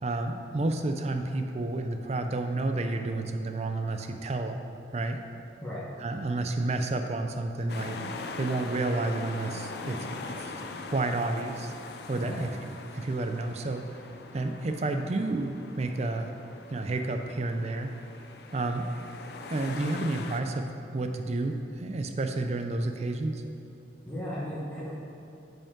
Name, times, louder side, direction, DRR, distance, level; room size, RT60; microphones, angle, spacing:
voice 1, 0.0-4.6 4.9-5.2 6.0-8.0 8.4-10.5 10.9-11.7 12.1-12.5 12.9-14.0 14.3-16.3 16.7-18.0 18.5-18.9 19.5-20.7 20.9-23.4, right 2 dB, 35° right, 6 dB, 0.4 m, -30 dB
sound 1, 7.7-20.4, left 3 dB, 60° left, 0.4 m, -42 dB
voice 2, 24.1-24.9, equal, 5° left, -9 dB, 1.1 m, -35 dB
9.0 x 5.2 x 3.7 m, 2.9 s
head